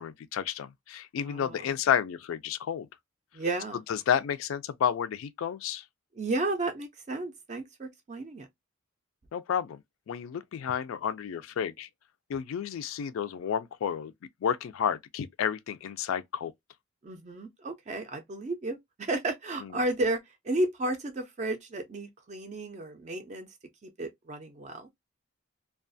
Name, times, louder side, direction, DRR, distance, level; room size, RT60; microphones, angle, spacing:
voice 1, 0.0-2.9 3.9-5.8 9.3-9.8 10.1-11.9 12.3-14.1 14.4-16.5 19.6-19.7, left 8 dB, 80° left, 0.3 m, -31 dB
voice 2, 1.3-1.7 3.3-3.8 6.2-8.5 17.0-20.2 20.4-23.5 23.8-24.9, right 2 dB, 35° right, 0.3 m, -33 dB
2.3 x 2.2 x 2.5 m
head